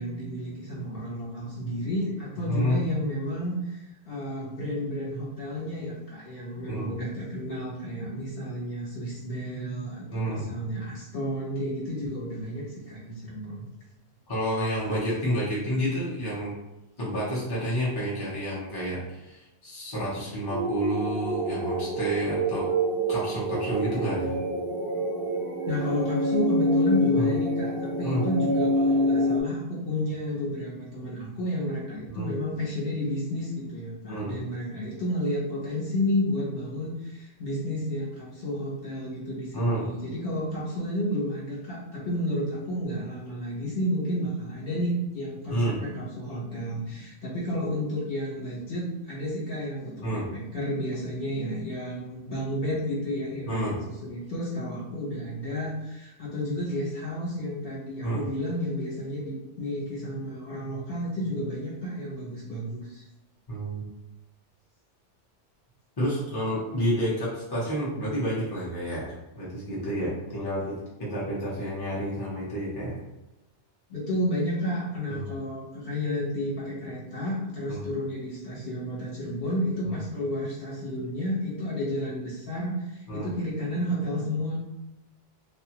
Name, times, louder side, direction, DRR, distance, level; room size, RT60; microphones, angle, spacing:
voice 1, 0.0-13.7 25.7-63.0 73.9-84.6, left 1 dB, 55° left, -7 dB, 1.2 m, -31 dB
voice 2, 2.5-2.8 6.7-6.9 10.1-10.5 14.3-16.5 17.0-22.7 23.1-24.4 27.2-27.3 28.0-28.3 32.1-32.3 34.1-34.4 39.5-39.8 45.5-45.8 50.0-50.3 53.5-53.8 58.0-58.2 63.5-63.9 66.0-73.0 75.1-75.3 77.7-77.8 79.9-80.0 83.1-83.3, equal, 25° left, -7 dB, 0.8 m, -30 dB
sound 1, 20.5-29.4, equal, 60° right, 0.7 m, -26 dB
2.5 x 2.4 x 2.8 m, 1.0 s
omnidirectional pair, 1.2 m